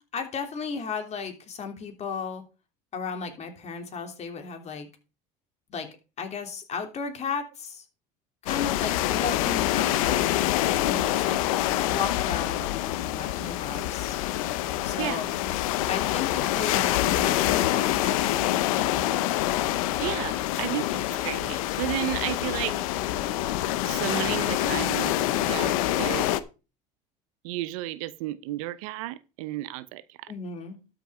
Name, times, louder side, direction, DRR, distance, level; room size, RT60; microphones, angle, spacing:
voice 1, 0.1-2.4 2.9-4.9 5.7-5.9 6.2-7.8 8.4-10.3 10.8-11.4 11.9-14.2 14.8-15.4 15.9-18.9 30.3-30.8, left 5 dB, 40° left, 3.1 m, -35 dB
sound 1, 8.5-26.4, left 14 dB, 90° left, 0.8 m, -26 dB
voice 2, 15.0-15.3 20.0-22.8 23.8-25.1 25.4-26.3 27.4-30.3, right 16 dB, 85° right, 0.8 m, -32 dB
12.5 x 6.1 x 4.9 m
supercardioid pair, 105°, 17 cm